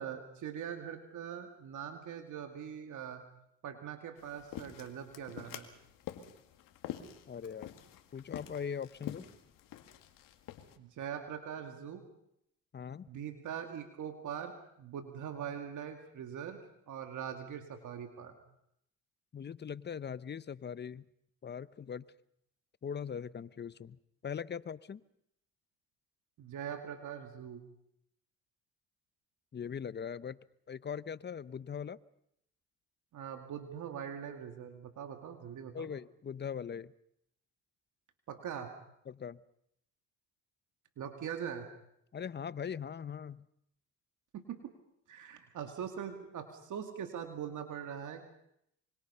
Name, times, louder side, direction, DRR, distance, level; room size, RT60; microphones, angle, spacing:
voice 1, 0.0-3.2 3.6-5.7 10.8-12.0 13.1-16.6 16.9-18.4 26.4-27.6 33.1-35.9 38.3-38.7 41.0-41.7 44.3-44.7 45.1-48.2, right 8 dB, 65° right, 6 dB, 2.3 m, -42 dB
sound 1, 4.2-10.8, left 12 dB, 80° left, 2.0 m, -47 dB
voice 2, 7.3-7.8 8.1-9.3 12.7-13.1 19.3-21.0 21.4-22.1 22.8-25.0 29.5-30.4 30.7-32.0 35.7-36.9 39.1-39.4 42.1-43.5, left 7 dB, 30° left, 17 dB, 0.8 m, -41 dB
25.0 x 24.5 x 5.6 m, 0.75 s
supercardioid pair, 75°, 33 cm